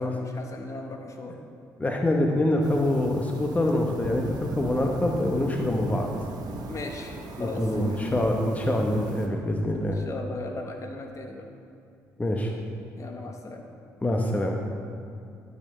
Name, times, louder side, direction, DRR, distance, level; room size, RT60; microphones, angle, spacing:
voice 1, 0.0-1.4 6.7-8.0 9.8-11.5 13.0-13.6, left 2 dB, 45° left, 3 dB, 1.1 m, -37 dB
voice 2, 1.8-6.1 7.4-10.0 12.2-12.6 14.0-14.6, left 1 dB, 20° left, 1 dB, 0.9 m, -25 dB
sound 1, 2.6-9.3, right 3 dB, 60° right, 0.9 m, -38 dB
11.5 x 6.6 x 3.2 m, 2.5 s
supercardioid pair, 60°, 8 cm